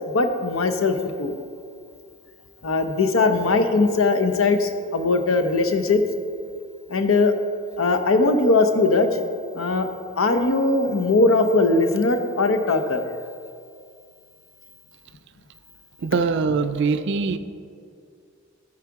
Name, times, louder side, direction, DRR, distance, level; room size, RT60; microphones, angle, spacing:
voice 1, 0.1-1.3 2.6-6.0 6.9-7.3 7.8-9.1 9.6-9.9 10.2-13.0, left 3 dB, 85° left, 7 dB, 0.7 m, -20 dB
voice 2, 16.0-17.4, right 4 dB, 60° right, 11 dB, 0.4 m, -22 dB
13.0 x 4.8 x 4.7 m, 2.3 s
head